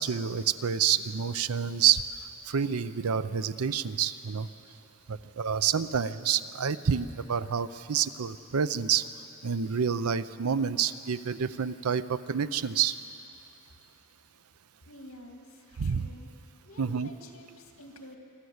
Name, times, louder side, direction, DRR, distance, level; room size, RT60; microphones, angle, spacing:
voice 1, 0.0-2.1 2.4-4.5 5.1-9.1 9.4-13.0 15.8-16.1 16.8-17.1, right 7 dB, 80° right, 14 dB, 0.6 m, -28 dB
voice 2, 14.9-16.3 16.6-18.2, left 1 dB, 65° left, 2 dB, 2.5 m, -49 dB
26.0 x 13.0 x 8.0 m, 2.8 s
head